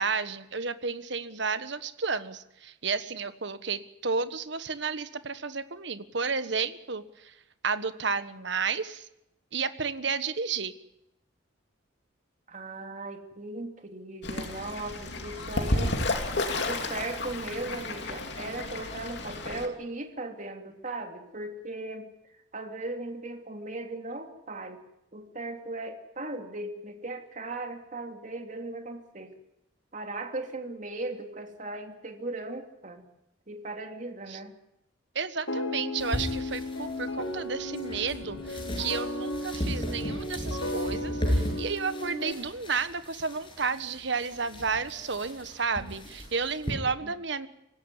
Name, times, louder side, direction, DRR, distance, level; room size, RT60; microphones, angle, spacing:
voice 1, 0.0-7.3 7.6-9.1 9.5-10.7 34.3-34.4 35.1-47.5, right 5 dB, 60° right, 12 dB, 1.4 m, -32 dB
voice 2, 12.5-16.0 16.6-22.1 22.5-24.8 25.1-29.3 29.9-33.0 33.5-34.5 47.0-47.1, right 2 dB, 40° right, 5 dB, 2.8 m, -37 dB
Fowl / Bird, 14.2-19.7, left 2 dB, 60° left, 2.9 m, -32 dB
sound 1, 35.5-42.3, left 1 dB, 75° left, 4.0 m, -35 dB
sound 2, 36.0-46.7, equal, 25° left, 7.8 m, -36 dB
25.0 x 17.0 x 9.8 m, 0.85 s
head